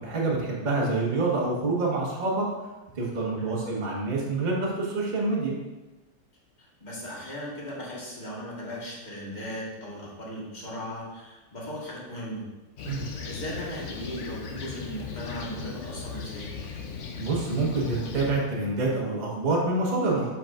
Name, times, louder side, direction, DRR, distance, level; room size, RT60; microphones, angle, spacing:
voice 1, 0.0-2.5 2.9-5.6 12.8-13.0 17.2-20.3, right 3 dB, 30° right, -3 dB, 1.2 m, -27 dB
voice 2, 6.6-12.4 13.2-16.6, equal, 25° left, -5 dB, 1.5 m, -37 dB
Fixed-wing aircraft airplane, 12.8-18.3, left 5 dB, 70° left, 0.7 m, -38 dB
7.7 x 5.7 x 2.5 m, 1.1 s
omnidirectional pair, 2.1 m